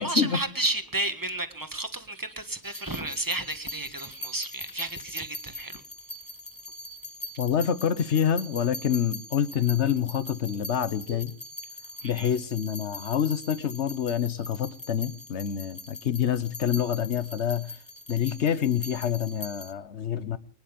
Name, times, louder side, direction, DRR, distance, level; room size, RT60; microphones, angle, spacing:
voice 1, 0.0-5.8 12.0-12.3, right 2 dB, 15° right, 1.4 m, -32 dB
sound 1, 2.6-19.7, left 1 dB, 15° left, 1.1 m, -42 dB
voice 2, 7.4-11.3 12.0-17.7 18.1-20.4, left 9 dB, 70° left, 1.3 m, -27 dB
24.5 x 10.5 x 5.2 m
omnidirectional pair, 1.3 m